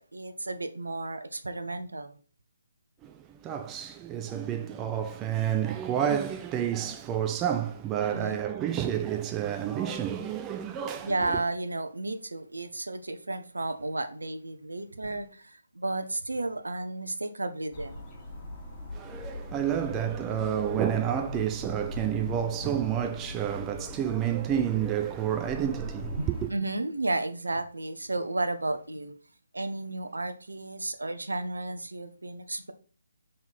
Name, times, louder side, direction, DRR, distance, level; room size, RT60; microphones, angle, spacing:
voice 1, 0.1-2.2 8.1-8.4 9.4-9.5 11.0-18.0 26.2-29.1 29.5-32.7, right 2 dB, 75° right, 0.8 m, -33 dB
voice 2, 3.0-11.4 18.9-26.5, right 10 dB, 15° right, 0.4 m, -30 dB
sound 1, 17.7-26.5, left 1 dB, 15° left, 1.9 m, -40 dB
5.6 x 3.8 x 4.4 m
figure-of-eight pair, 140°, 0 cm